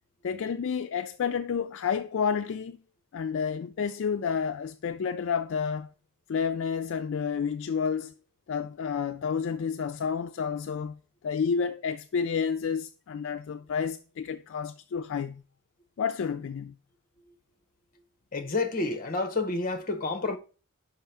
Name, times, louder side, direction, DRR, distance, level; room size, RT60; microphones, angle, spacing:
voice 1, 0.2-2.8 3.1-5.9 6.3-8.1 8.5-15.4 16.0-16.8, left 6 dB, 55° left, 0.3 m, -30 dB
voice 2, 18.3-20.4, left 3 dB, 40° left, 0.7 m, -29 dB
5.4 x 4.6 x 5.5 m
head